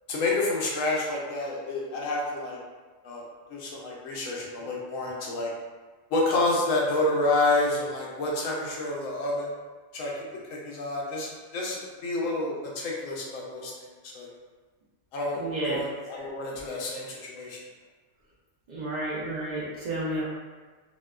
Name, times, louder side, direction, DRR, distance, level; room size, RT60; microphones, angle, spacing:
voice 1, 0.1-2.6 3.0-3.2 3.5-5.5 6.1-9.5 9.9-10.1 10.5-14.3 15.1-17.6, left 2 dB, 85° left, -3 dB, 1.0 m, -29 dB
voice 2, 15.4-15.8 18.7-20.2, right 1 dB, 80° right, -7 dB, 0.4 m, -31 dB
2.7 x 2.2 x 2.3 m, 1.4 s
omnidirectional pair, 1.3 m